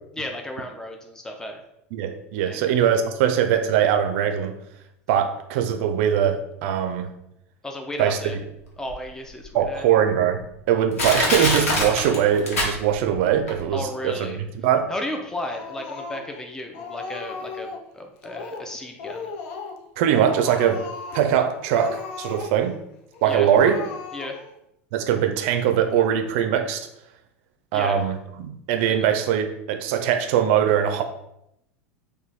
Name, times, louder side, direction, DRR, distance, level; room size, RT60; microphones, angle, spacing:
voice 1, 0.1-1.6 2.4-2.8 7.6-8.4 8.8-9.9 13.7-14.4 14.9-17.7 17.9-19.3 23.3-23.5 24.1-24.4 27.7-28.0 28.9-29.0, left 1 dB, 5° left, 3 dB, 0.5 m, -34 dB
voice 2, 1.9-4.5 5.1-7.1 8.0-8.2 9.5-14.9 20.0-20.9 21.1-22.8 23.2-23.8 24.9-26.9 27.7-31.0, right 9 dB, 60° right, 7 dB, 0.4 m, -21 dB
Crushing, 8.9-9.0 9.6-9.7 10.4-10.5 11.0-13.2 13.5-13.6, left 1 dB, 80° left, 1.0 m, -23 dB
Speech, 15.5-16.4 16.7-17.9 18.2-18.7 19.0-19.8 20.1-21.3 21.7-22.8 23.1-23.2 23.5-24.6, left 4 dB, 60° left, 0.5 m, -36 dB
3.0 x 2.2 x 4.0 m, 0.79 s
hypercardioid pair, 85°, 8 cm